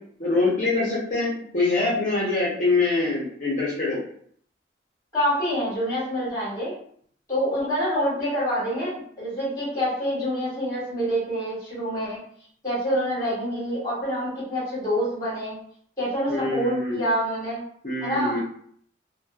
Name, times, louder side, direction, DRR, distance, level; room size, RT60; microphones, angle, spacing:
voice 1, 0.2-4.0 16.3-17.0 17.8-18.4, left 3 dB, 45° left, -7 dB, 0.7 m, -24 dB
voice 2, 5.1-6.8 7.3-12.2 12.6-15.5 16.0-17.6 18.0-18.4, equal, 20° left, -8 dB, 1.5 m, -26 dB
2.9 x 2.2 x 2.3 m, 0.62 s
head